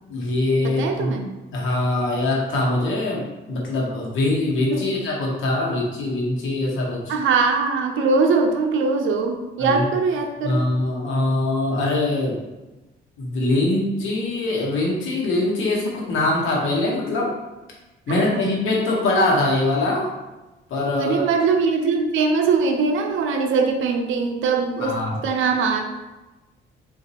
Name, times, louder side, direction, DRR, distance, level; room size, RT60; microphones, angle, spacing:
voice 1, 0.1-1.1 1.5-7.1 9.6-9.8 10.4-12.4 13.2-17.3 18.1-20.1 20.7-21.2 24.8-25.2, left 2 dB, 80° left, -3 dB, 1.0 m, -23 dB
voice 2, 0.6-1.3 4.7-4.9 7.1-10.6 18.1-18.4 21.0-25.0 25.2-25.8, right 4 dB, 80° right, 4 dB, 0.5 m, -21 dB
3.9 x 2.5 x 2.8 m, 1.1 s
cardioid pair, 90°, 20 cm